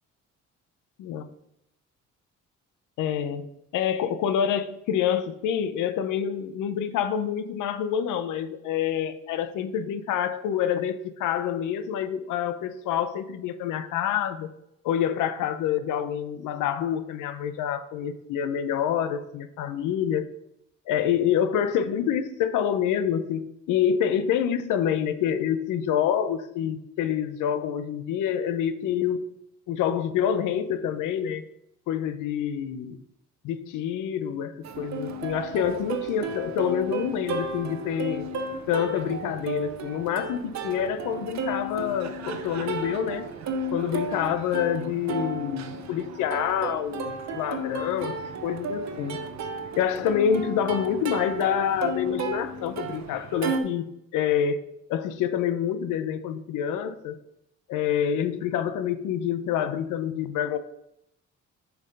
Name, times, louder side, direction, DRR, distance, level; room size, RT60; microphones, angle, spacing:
voice 1, 3.0-14.5 14.8-20.2 20.9-29.3 29.7-31.4 31.9-33.0 33.4-38.3 38.7-43.3 43.7-48.1 48.4-49.2 49.7-54.6 54.9-57.2 57.7-60.6, left 9 dB, 90° left, 12 dB, 0.7 m, -27 dB
Plucked string instrument, 34.6-53.6, right 3 dB, 65° right, 0.9 m, -33 dB
7.0 x 4.4 x 5.2 m, 0.80 s
cardioid pair, 90°, 30 cm